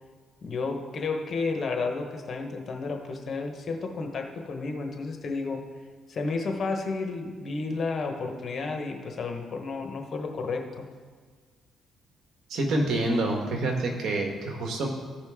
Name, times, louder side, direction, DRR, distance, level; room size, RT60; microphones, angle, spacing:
voice 1, 0.4-5.7 6.1-10.8, left 4 dB, 50° left, 3 dB, 1.1 m, -32 dB
voice 2, 12.5-14.9, right 2 dB, 70° right, 2 dB, 1.5 m, -27 dB
14.5 x 5.1 x 3.7 m, 1.5 s
cardioid pair, 90°, 0 cm